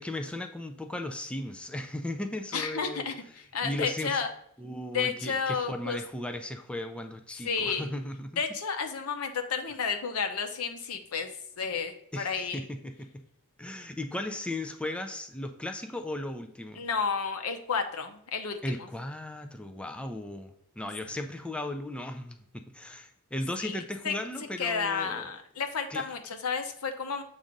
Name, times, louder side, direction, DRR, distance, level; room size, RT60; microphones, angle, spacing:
voice 1, 0.0-3.0 3.6-4.2 4.6-8.4 12.1-13.1 13.6-16.8 18.6-25.3 25.9-26.1, left 1 dB, 5° left, 6 dB, 0.3 m, -36 dB
voice 2, 2.5-4.3 4.9-6.0 7.4-7.9 8.4-11.3 11.6-12.7 16.8-18.6 23.6-24.1 24.6-27.2, left 5 dB, 85° left, 6 dB, 0.8 m, -31 dB
7.2 x 2.6 x 5.1 m, 0.74 s
head